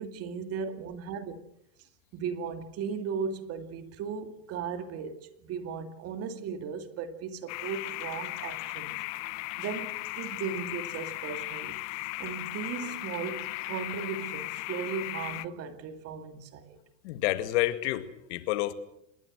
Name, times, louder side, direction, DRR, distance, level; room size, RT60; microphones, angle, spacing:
voice 1, 0.0-1.4 2.1-8.9 9.6-11.8 12.2-16.8, right 6 dB, 40° right, 2.4 m, -36 dB
sound 1, 7.5-15.4, left 22 dB, 45° left, 0.9 m, -37 dB
voice 2, 17.0-18.7, left 16 dB, 60° left, 2.3 m, -29 dB
27.5 x 21.5 x 6.4 m
supercardioid pair, 135°, 38 cm